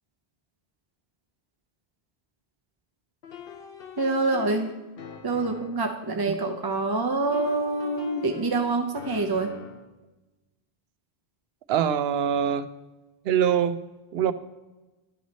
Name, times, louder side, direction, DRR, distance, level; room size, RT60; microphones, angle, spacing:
sound 1, 3.2-5.9 7.2-9.9, left 6 dB, 70° left, 0.9 m, -44 dB
voice 1, 4.0-4.7 5.2-9.6, right 3 dB, 30° right, 3 dB, 0.5 m, -26 dB
voice 2, 11.7-12.7 13.2-13.8 14.1-14.3, right 8 dB, 75° right, 13 dB, 0.8 m, -23 dB
11.5 x 6.3 x 4.1 m, 1.1 s
omnidirectional pair, 1.1 m